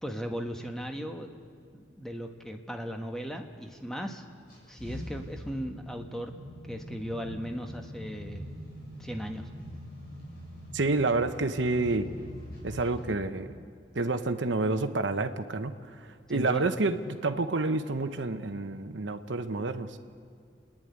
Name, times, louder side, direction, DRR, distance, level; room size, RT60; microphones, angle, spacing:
voice 1, 0.0-1.3 1.7-4.2 4.7-6.3 6.6-8.4 9.0-9.5 16.3-16.6, equal, 5° left, 4 dB, 1.3 m, -37 dB
sound 1, 4.5-13.0, equal, 55° left, 6.6 m, -43 dB
voice 2, 10.7-12.1 12.6-13.5 13.9-20.0, right 3 dB, 75° right, 9 dB, 1.0 m, -29 dB
29.0 x 10.5 x 9.6 m, 2.1 s
head